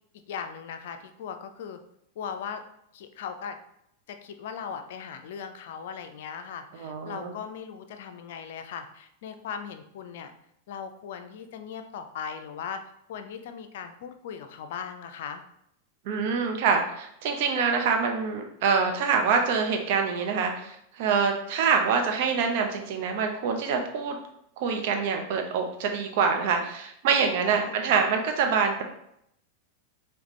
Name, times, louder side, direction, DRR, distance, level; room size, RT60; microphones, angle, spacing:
voice 1, 0.3-1.8 2.2-2.6 2.9-3.6 4.1-10.3 10.7-15.4 27.5-28.0, left 7 dB, 55° left, 8 dB, 0.4 m, -38 dB
voice 2, 6.8-7.3 16.1-24.2 24.6-28.8, right 5 dB, 50° right, 3 dB, 0.7 m, -25 dB
5.0 x 3.0 x 3.1 m, 0.76 s
figure-of-eight pair, 90°, 0 cm